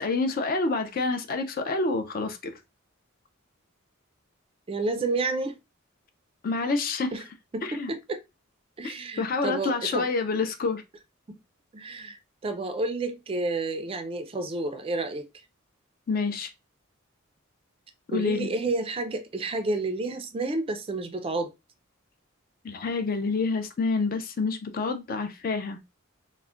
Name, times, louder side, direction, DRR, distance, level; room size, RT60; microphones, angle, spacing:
voice 1, 0.0-2.5 6.4-7.1 7.6-7.9 8.8-10.8 16.1-16.5 18.1-18.5 22.6-25.8, left 3 dB, 45° left, 0.4 m, -28 dB
voice 2, 4.7-5.6 7.1-7.3 7.5-8.2 8.8-10.1 11.3-11.4 11.7-15.3 18.1-21.5, right 2 dB, 25° right, 0.3 m, -30 dB
2.2 x 2.1 x 3.7 m
head